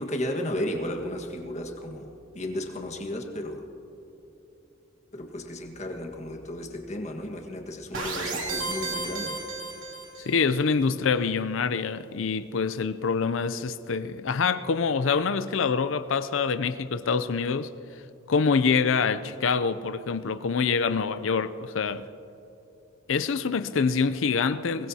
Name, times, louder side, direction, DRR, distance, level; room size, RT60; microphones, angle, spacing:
voice 1, 0.0-3.6 5.1-9.4, left 1 dB, 35° left, 1.5 m, -34 dB
sound 1, 7.9-10.4, right 3 dB, 85° right, 2.6 m, -33 dB
voice 2, 10.2-17.7 18.3-22.0 23.1-24.9, left 5 dB, 75° left, 0.5 m, -25 dB
22.5 x 20.0 x 2.8 m
head